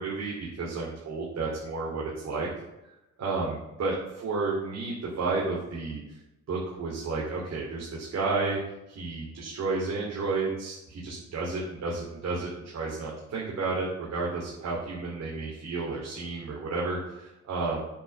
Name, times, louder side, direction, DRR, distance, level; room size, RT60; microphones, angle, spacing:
voice 1, 0.0-2.5 3.2-6.0 6.5-8.6 8.9-17.8, right 3 dB, 60° right, -4 dB, 2.7 m, -31 dB
8.8 x 5.5 x 6.9 m, 0.93 s
cardioid pair, 90°, 30 cm